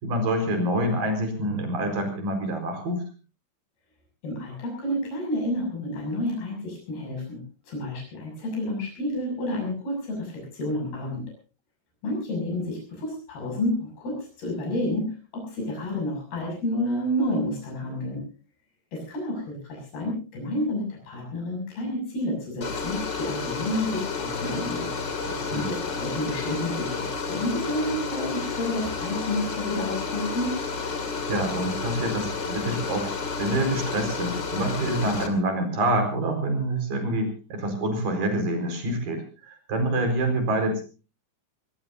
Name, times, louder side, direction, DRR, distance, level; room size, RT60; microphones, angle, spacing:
voice 1, 0.0-3.0 25.2-25.7 31.2-40.8, right 1 dB, 65° right, 5 dB, 6.2 m, -27 dB
voice 2, 4.2-7.4 7.7-11.2 12.0-15.1 15.3-18.2 18.9-24.9 25.5-26.9 27.3-30.5, left 1 dB, 90° left, 0 dB, 8.7 m, -30 dB
sound 1, 22.6-35.3, left 4 dB, 30° left, 2.7 m, -31 dB
23.5 x 21.0 x 2.7 m, 0.34 s
omnidirectional pair, 4.4 m